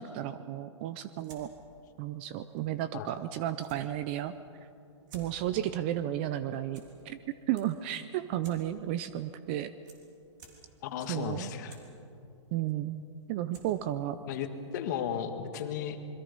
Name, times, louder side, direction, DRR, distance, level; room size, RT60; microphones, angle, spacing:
voice 1, 0.0-1.5 2.0-4.3 5.1-7.2 7.5-9.7 11.1-11.5 12.5-14.2, right 12 dB, 25° right, 12 dB, 0.4 m, -33 dB
sound 1, 0.9-15.3, right 3 dB, 40° right, 3.5 m, -60 dB
voice 2, 10.8-11.8 14.3-14.5 14.7-16.0, left 8 dB, 35° left, 7 dB, 1.7 m, -35 dB
27.0 x 22.0 x 5.3 m, 2.7 s
hypercardioid pair, 165°, 16 cm